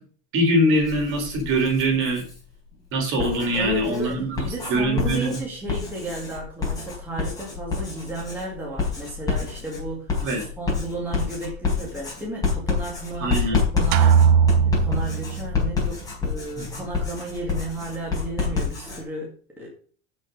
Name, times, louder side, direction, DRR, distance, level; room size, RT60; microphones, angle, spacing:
voice 1, 0.3-2.2 2.9-4.4 4.7-5.4 10.2-10.4 13.2-13.6 16.6-16.7, right 1 dB, 45° right, 1 dB, 4.2 m, -22 dB
Writing, 0.8-2.4 3.0-19.0, left 5 dB, 10° left, 4.1 m, -28 dB
voice 2, 3.5-4.2 4.4-14.3 14.6-19.7, right 2 dB, 5° right, -4 dB, 2.1 m, -33 dB
sound 1, 13.9-15.8, right 7 dB, 70° right, 0.8 m, -19 dB
7.5 x 6.2 x 6.5 m, 0.43 s
cardioid pair, 170°, 30 cm